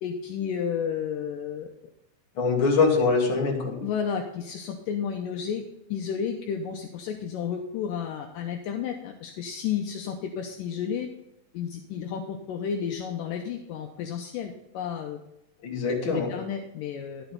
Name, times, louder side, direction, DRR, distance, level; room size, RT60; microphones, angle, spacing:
voice 1, 0.0-1.7 3.8-5.6 5.9-11.1 11.5-15.2 16.0-17.3, left 7 dB, 75° left, 3 dB, 2.3 m, -32 dB
voice 2, 2.4-3.8 15.6-16.3, left 4 dB, 40° left, -1 dB, 2.5 m, -23 dB
11.5 x 6.9 x 4.0 m, 0.85 s
omnidirectional pair, 4.3 m